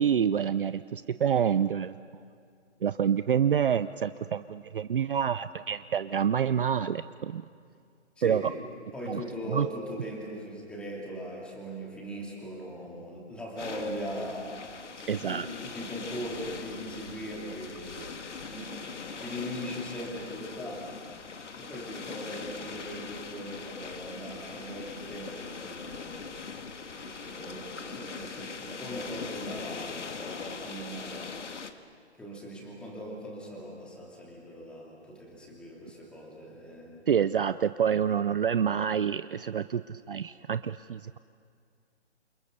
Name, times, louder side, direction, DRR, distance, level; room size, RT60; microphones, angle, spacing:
voice 1, 0.0-1.9 2.8-7.4 8.2-8.5 9.1-9.2 9.5-9.7 15.1-15.5 37.1-41.2, right 8 dB, 50° right, 13 dB, 0.6 m, -27 dB
voice 2, 8.2-8.6 8.9-14.5 15.2-18.2 18.5-18.7 19.1-20.9 21.6-26.4 26.9-31.4 32.2-37.0, equal, 5° left, -3 dB, 2.9 m, -40 dB
sound 1, 13.6-31.7, left 5 dB, 85° left, 2.1 m, -41 dB
29.0 x 28.5 x 6.8 m, 2.3 s
hypercardioid pair, 165°, 35 cm